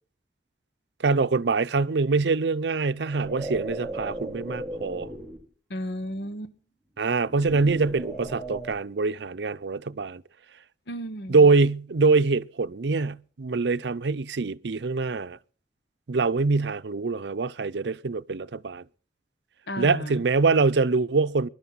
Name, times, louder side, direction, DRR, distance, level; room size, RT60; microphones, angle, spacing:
voice 1, 1.0-5.1 7.0-10.2 11.3-15.4 16.1-18.8 19.8-21.5, right 4 dB, 85° right, 0.6 m, -24 dB
sound 1, 3.0-5.4 7.2-8.8, right 2 dB, ahead, 1.7 m, -36 dB
voice 2, 5.7-6.5 10.9-11.5 19.7-20.2, equal, 80° left, 1.1 m, -34 dB
22.5 x 11.5 x 4.0 m
head